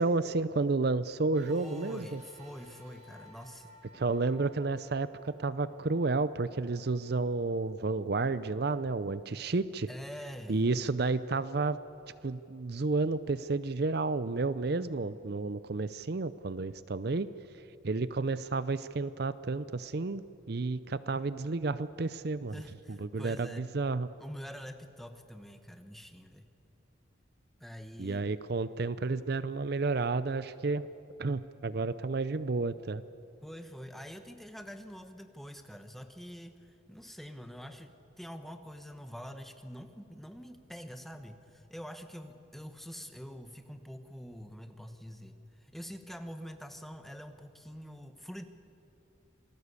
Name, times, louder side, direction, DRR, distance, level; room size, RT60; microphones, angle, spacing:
voice 1, 0.0-2.2 3.9-9.9 10.5-11.8 12.2-17.3 17.8-22.5 22.9-24.1 28.0-30.9 31.2-33.0, right 3 dB, 50° right, 15 dB, 0.6 m, -31 dB
sound 1, 1.3-9.9 10.6-10.7 11.8-11.9, equal, 35° right, 4.0 m, -59 dB
voice 2, 1.5-3.7 9.9-10.6 22.5-23.7 24.2-26.5 27.6-28.3 33.4-48.5, equal, ahead, 7 dB, 1.2 m, -45 dB
27.0 x 19.5 x 8.3 m, 2.9 s
head